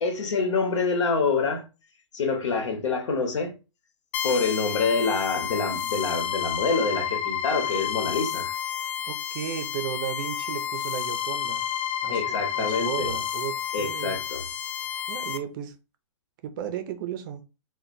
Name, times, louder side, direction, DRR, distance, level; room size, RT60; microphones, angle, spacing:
voice 1, 0.0-1.6 2.1-3.5 4.2-8.5 12.1-13.1 13.7-14.4, left 4 dB, 75° left, 0.9 m, -26 dB
sound 1, 4.1-15.4, left 9 dB, 35° left, 0.4 m, -30 dB
voice 2, 9.1-11.6 12.0-14.2 15.1-15.7 16.4-17.4, right 10 dB, 45° right, 0.5 m, -34 dB
2.2 x 2.1 x 3.8 m
hypercardioid pair, 140°, 15 cm